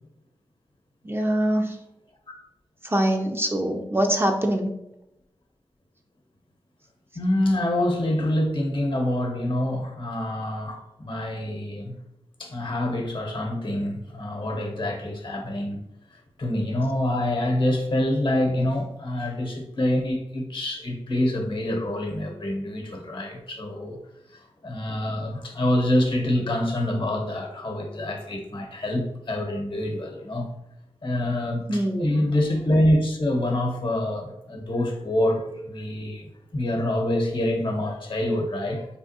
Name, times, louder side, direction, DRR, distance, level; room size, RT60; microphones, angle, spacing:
voice 1, 1.0-1.8 2.8-4.7 31.7-32.2, right 1 dB, 25° right, 3 dB, 0.4 m, -24 dB
voice 2, 7.1-11.9 12.4-15.8 16.4-24.0 24.6-30.5 31.0-36.3 36.5-38.9, left 1 dB, 55° left, 2 dB, 0.8 m, -26 dB
3.4 x 2.4 x 2.7 m, 0.84 s
cardioid pair, 45°, 10 cm